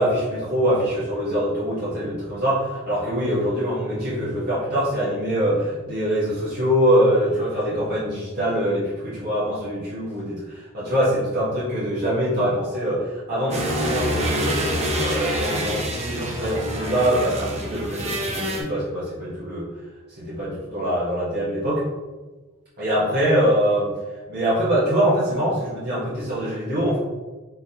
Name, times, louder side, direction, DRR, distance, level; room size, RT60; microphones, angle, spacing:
voice 1, 0.0-14.6 15.0-19.7 20.2-21.8 22.8-23.9 24.3-27.0, equal, 50° right, -9 dB, 1.3 m, -23 dB
sound 1, 13.5-18.6, equal, 30° right, 0.9 m, -26 dB
4.8 x 3.8 x 2.9 m, 1.2 s
head